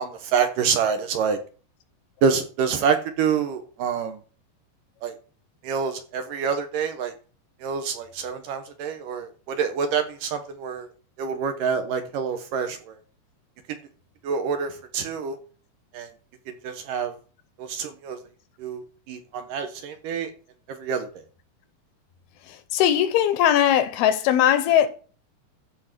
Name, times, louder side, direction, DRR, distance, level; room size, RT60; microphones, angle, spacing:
voice 1, 0.0-1.4 2.2-4.2 5.0-5.1 5.6-7.1 7.6-10.9 11.2-13.0 14.2-15.4 15.9-16.1 16.6-17.1 17.6-18.2 18.6-20.3 20.7-21.2, right 6 dB, 70° right, 2.4 m, -27 dB
voice 2, 22.5-24.9, left 10 dB, 80° left, 2.7 m, -20 dB
13.5 x 4.6 x 6.1 m
omnidirectional pair, 4.6 m